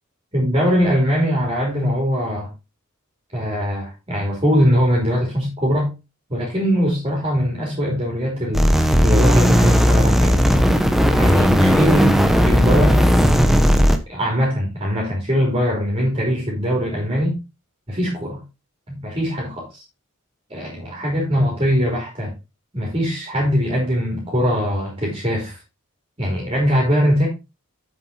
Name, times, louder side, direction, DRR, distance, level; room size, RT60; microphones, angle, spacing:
voice 1, 0.3-2.5 3.3-5.9 6.3-8.7 9.0-10.4 11.1-12.1 12.4-13.1 14.1-17.3 17.9-18.4 18.9-19.8 20.5-22.3 22.7-25.6 26.2-27.3, equal, 25° right, -2 dB, 3.4 m, -21 dB
sound 1, 8.5-14.0, equal, ahead, 0.9 m, -15 dB
7.9 x 7.4 x 4.2 m, 0.26 s
head